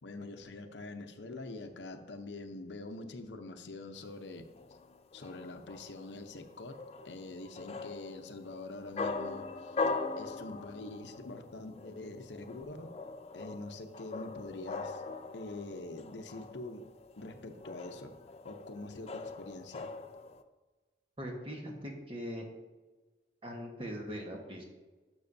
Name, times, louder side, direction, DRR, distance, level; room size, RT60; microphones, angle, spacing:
voice 1, 0.0-4.5 5.1-6.8 7.0-9.8 10.2-12.9 13.3-15.0 15.3-16.9 17.2-18.1 18.4-19.9, left 2 dB, 85° left, 6 dB, 0.8 m, -44 dB
sound 1, 4.0-20.4, left 3 dB, 35° left, 0.4 m, -41 dB
voice 2, 21.2-22.5 23.4-24.6, equal, 30° right, 1 dB, 1.3 m, -41 dB
12.0 x 6.2 x 2.7 m, 1.2 s
head